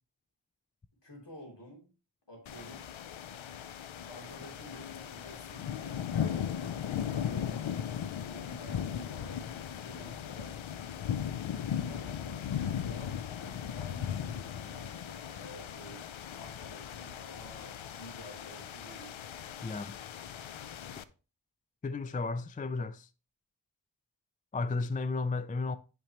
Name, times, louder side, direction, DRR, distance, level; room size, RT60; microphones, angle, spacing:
voice 1, 1.0-1.9 2.3-2.8 4.1-7.5 8.2-10.5 11.8-16.0 16.4-19.1, equal, 65° left, 3.4 m, -50 dB
sound 1, 2.5-21.0, left 9 dB, 90° left, 0.5 m, -37 dB
voice 2, 19.6-20.0 21.8-23.1 24.5-25.8, left 3 dB, 20° left, 0.3 m, -33 dB
9.0 x 5.2 x 2.9 m
wide cardioid pair, 45°, 45 cm